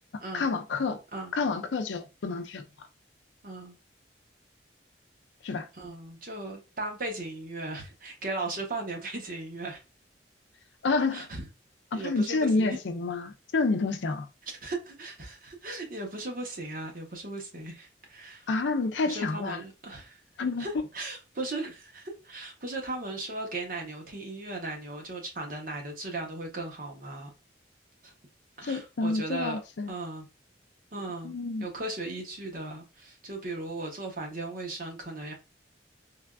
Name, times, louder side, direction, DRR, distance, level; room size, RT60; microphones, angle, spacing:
voice 1, 0.3-1.0 1.3-2.6 5.4-5.7 10.8-11.3 11.9-14.3 18.5-19.6 20.4-20.7 28.6-29.9 31.2-31.7, left 3 dB, 80° left, 0.5 m, -29 dB
voice 2, 3.4-3.8 5.7-9.8 11.1-11.4 11.9-12.7 14.5-18.5 19.1-20.2 20.6-27.3 28.0-28.1 28.6-29.6 29.9-30.3 30.9-31.3 31.6-35.3, right 2 dB, 50° right, 0.8 m, -37 dB
3.3 x 2.3 x 2.2 m
head